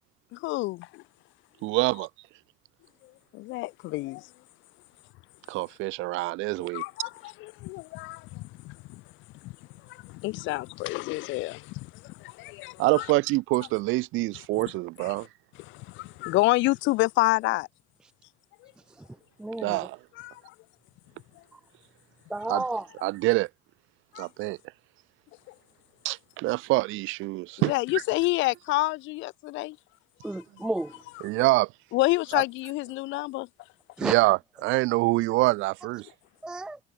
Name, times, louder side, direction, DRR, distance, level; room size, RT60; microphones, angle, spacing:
voice 1, 0.3-1.0 3.3-4.3 6.7-9.0 9.4-9.5 9.9-13.1 15.6-17.7 20.2-20.4 24.1-24.3 27.6-29.8 31.9-33.5, left 20 dB, 65° left, 1.0 m, -28 dB
voice 2, 1.6-2.1 5.5-6.8 12.8-15.3 19.6-20.0 22.5-22.6 23.0-23.5 24.2-24.6 26.0-28.0 31.2-31.7 32.3-32.4 34.0-36.1, right 21 dB, 65° right, 2.6 m, -25 dB
voice 3, 19.4-19.8 21.5-21.6 22.3-22.9 30.2-30.9 34.0-34.1 36.4-36.8, right 2 dB, 5° right, 0.3 m, -31 dB
cardioid pair, 145°, 21 cm